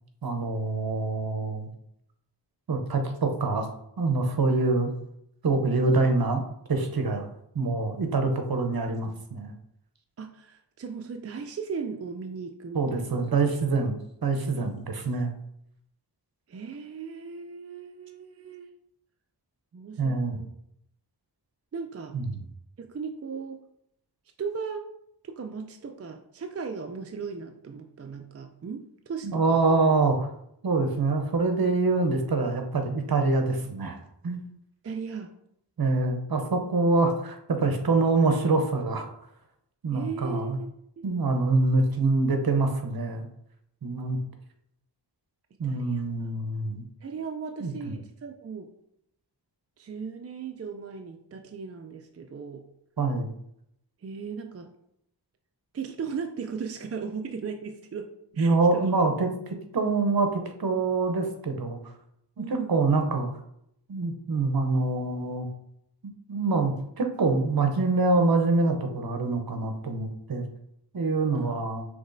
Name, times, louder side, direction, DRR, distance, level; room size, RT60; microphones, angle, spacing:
voice 1, 0.2-1.7 2.7-3.7 4.0-4.9 5.4-6.4 6.7-7.3 7.5-9.5 12.7-15.3 20.0-20.4 22.1-22.4 29.3-30.3 30.6-34.0 34.2-34.4 35.8-39.1 39.8-40.6 41.0-43.3 43.8-44.2 45.6-46.8 47.6-47.9 53.0-53.3 58.4-61.8 62.4-63.3 63.9-65.5 66.3-70.5 70.9-71.8, right 3 dB, 55° right, 5 dB, 0.8 m, -25 dB
voice 2, 10.2-13.2 16.5-18.7 19.7-20.5 21.7-22.2 22.8-23.6 24.4-24.9 25.2-29.8 34.8-35.3 39.9-40.7 41.0-41.1 45.6-46.0 47.0-48.7 49.8-52.6 54.0-54.7 55.7-58.9 62.4-62.8 71.3-71.5, right 5 dB, 35° right, 5 dB, 0.4 m, -37 dB
6.0 x 3.0 x 2.6 m, 0.75 s
wide cardioid pair, 55°, 42 cm